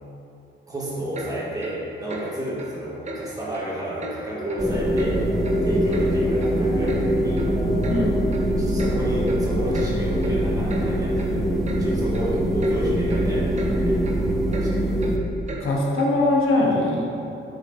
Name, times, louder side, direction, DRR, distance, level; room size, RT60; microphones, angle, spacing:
voice 1, 0.7-5.2 5.6-7.5 8.6-11.5 11.8-14.0 14.6-15.0, right 1 dB, 15° right, -7 dB, 1.6 m, -31 dB
Clock, 1.1-1.3 1.6-1.8 2.1-2.3 2.6-2.7 3.0-3.2 3.5-3.7 4.0-4.1 4.5-4.6 5.0-5.1 5.4-6.1 6.4-6.5 6.9-7.0 7.4-7.5 7.8-8.0 8.3-8.5 8.8-8.9 9.3-9.4 9.7-9.9 10.2-10.3 10.7-10.8 11.2-11.3 11.7-11.8 12.1-12.3 12.6-12.8 13.1-13.2 13.6-13.7 14.0-14.2 14.5-14.7 15.0-15.1 15.5-15.6 16.0-16.1, right 2 dB, 35° right, 0.8 m, -36 dB
sound 1, 4.3-9.5, equal, 50° left, 1.2 m, -33 dB
sound 2, 4.6-15.2, equal, ahead, 0.4 m, -23 dB
voice 2, 7.9-8.2 15.6-17.0, left 2 dB, 85° left, -2 dB, 1.3 m, -21 dB
8.9 x 5.4 x 3.4 m, 2.8 s
wide cardioid pair, 165°, 21 cm